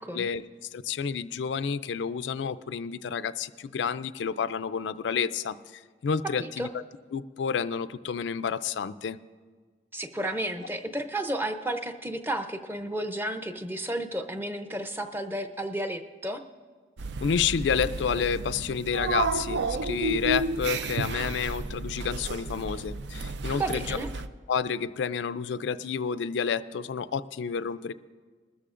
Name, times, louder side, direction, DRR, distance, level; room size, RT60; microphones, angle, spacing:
voice 1, 0.7-6.8 7.1-9.2 17.2-24.0 24.5-27.9, left 6 dB, 85° left, 14 dB, 0.4 m, -30 dB
voice 2, 6.2-6.7 9.9-16.4 23.6-24.1, right 1 dB, 10° right, 7 dB, 0.6 m, -32 dB
sound 1, 17.0-24.3, right 3 dB, 75° right, 0.5 m, -32 dB
20.0 x 13.5 x 2.5 m, 1.5 s
head